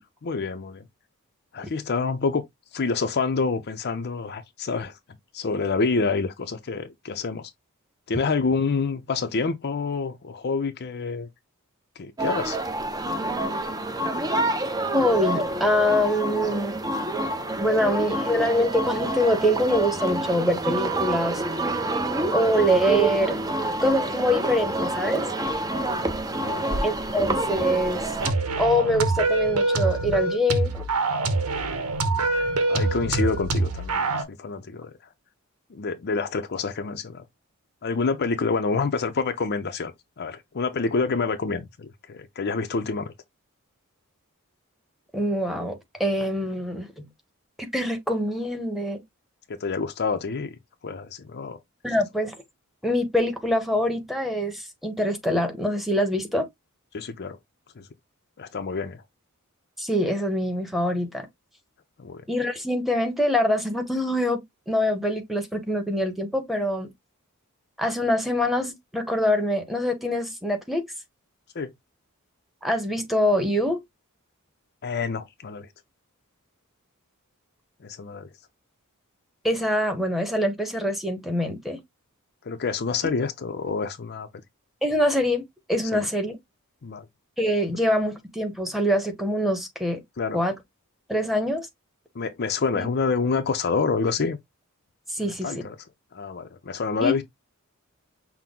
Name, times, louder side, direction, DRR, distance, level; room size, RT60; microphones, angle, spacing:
voice 1, 0.2-0.9 1.5-2.4 2.7-4.9 5.3-7.5 8.1-11.3 12.0-12.6 26.5-26.7 32.7-34.9 35.7-37.2 37.8-39.9 40.2-43.1 49.6-50.5 50.8-51.6 56.9-57.4 57.8-57.9 58.4-59.0 62.0-62.2 71.5-71.7 74.8-75.7 77.8-78.3 82.5-84.3 85.9-86.1 86.8-87.0 90.2-90.4 92.1-94.4 95.2-95.8 96.1-97.2, left 4 dB, 50° left, 0.6 m, -27 dB
sound 1, 12.2-28.3, right 1 dB, 15° right, 0.6 m, -27 dB
voice 2, 14.9-16.8 17.6-21.4 22.3-23.4 23.8-25.3 26.8-28.0 28.6-30.9 45.1-47.1 47.6-49.0 51.8-52.4 52.8-56.5 59.8-61.3 62.3-64.4 64.7-66.9 67.8-70.8 72.6-73.8 79.4-81.8 84.8-85.4 85.7-86.4 87.4-90.0 90.3-90.6 91.1-91.7 92.8-92.9 95.1-95.5 97.0-97.1, equal, ahead, 1.0 m, -24 dB
sound 2, 28.2-34.2, right 3 dB, 80° right, 1.0 m, -25 dB
5.9 x 2.1 x 3.6 m
head